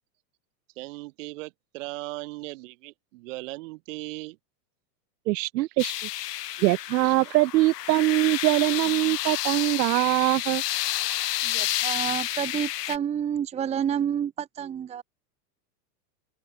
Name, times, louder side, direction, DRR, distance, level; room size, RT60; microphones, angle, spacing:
voice 1, 0.8-4.4 7.0-7.3, right 22 dB, 50° right, 6.8 m, -38 dB
voice 2, 5.3-5.9 6.6-10.6, right 19 dB, 90° right, 0.6 m, -23 dB
sound 1, 5.8-13.0, left 14 dB, 75° left, 3.7 m, -30 dB
voice 3, 11.4-15.0, right 9 dB, 15° right, 1.3 m, -29 dB
open air
supercardioid pair, 165°, 48 cm